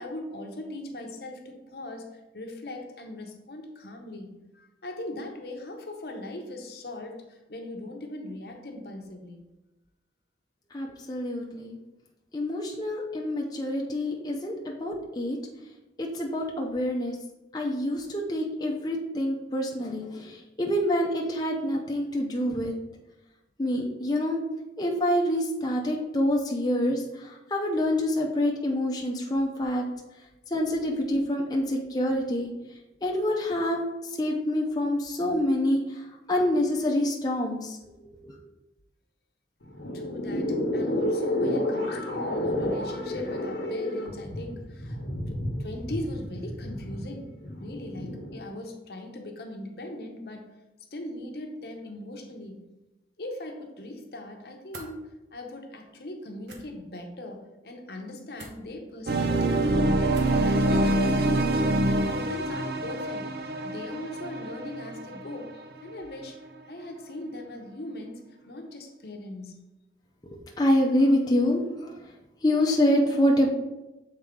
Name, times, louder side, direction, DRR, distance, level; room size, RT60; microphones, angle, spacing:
voice 1, 0.0-2.1 2.3-9.5 39.9-45.0 45.2-47.3 47.6-50.5 50.9-52.6 53.2-59.9 60.6-66.4 66.7-69.6, left 1 dB, 65° left, 4 dB, 0.8 m, -39 dB
voice 2, 10.7-11.8 12.3-15.4 16.0-17.2 17.5-22.7 23.6-24.4 24.8-29.8 30.5-32.5 33.0-33.8 34.2-37.8 38.2-38.4 70.2-72.0 72.4-73.5, left 1 dB, 20° left, -1 dB, 0.6 m, -26 dB
sound 1, 39.6-48.4, left 1 dB, 90° left, 0.9 m, -30 dB
sound 2, 54.7-54.9 56.4-56.6 58.3-58.6 60.1-60.4, right 2 dB, 80° right, 1.0 m, -44 dB
sound 3, 59.1-65.9, right 1 dB, 60° right, 0.5 m, -25 dB
6.9 x 4.0 x 3.7 m, 1.0 s
head